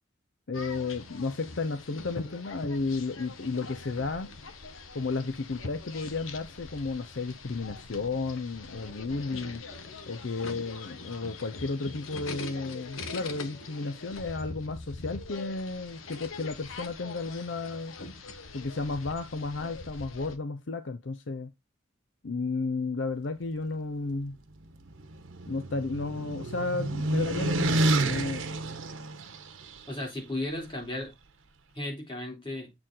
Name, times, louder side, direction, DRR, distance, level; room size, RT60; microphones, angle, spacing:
sound 1, 0.5-20.4, left 3 dB, 85° left, 1.1 m, -43 dB
voice 1, 0.5-4.3 4.9-9.6 10.1-17.9 18.5-21.5 22.2-24.4 25.5-28.5, left 3 dB, 65° left, 0.6 m, -33 dB
sound 2, 24.6-29.8, right 2 dB, 90° right, 1.2 m, -29 dB
voice 2, 29.9-31.1 31.7-32.7, left 1 dB, 25° left, 2.9 m, -35 dB
7.8 x 4.4 x 3.8 m
head